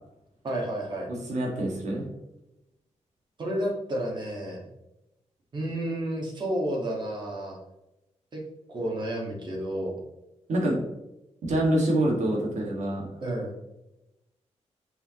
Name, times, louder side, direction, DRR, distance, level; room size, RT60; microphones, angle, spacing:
voice 1, 0.4-1.1 3.4-4.7 5.5-7.6 8.3-8.4 8.7-10.0 13.2-13.6, right 1 dB, 40° right, -1 dB, 1.9 m, -31 dB
voice 2, 1.3-2.1 10.5-10.8 11.4-13.1, right 1 dB, 80° right, -2 dB, 2.3 m, -26 dB
6.9 x 6.8 x 3.2 m, 0.92 s
wide cardioid pair, 180°, 12 cm